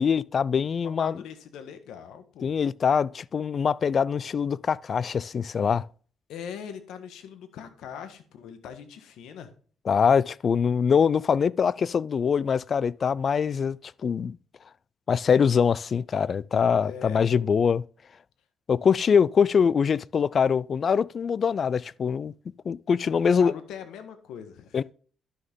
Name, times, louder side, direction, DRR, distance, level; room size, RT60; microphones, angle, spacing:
voice 1, 0.0-1.2 2.4-5.9 9.9-13.8 14.0-14.4 15.1-17.8 18.7-22.3 22.7-23.5 24.7-24.8, left 6 dB, 50° left, 0.3 m, -23 dB
voice 2, 0.8-2.6 6.3-9.5 16.8-17.5 23.2-24.8, left 8 dB, 85° left, 1.4 m, -41 dB
11.0 x 6.4 x 3.7 m
cardioid pair, 90°, 0 cm